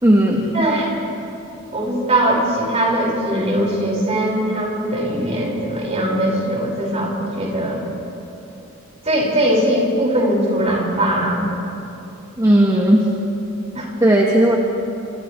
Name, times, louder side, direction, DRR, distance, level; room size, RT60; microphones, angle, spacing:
voice 1, 0.0-0.7 12.4-13.1 14.0-14.6, right 1 dB, 15° right, -1 dB, 1.5 m, -15 dB
voice 2, 0.5-0.9 1.7-7.8 9.1-11.4 13.7-13.9, right 1 dB, 35° right, -3 dB, 5.3 m, -20 dB
29.5 x 28.0 x 3.3 m, 2.8 s
head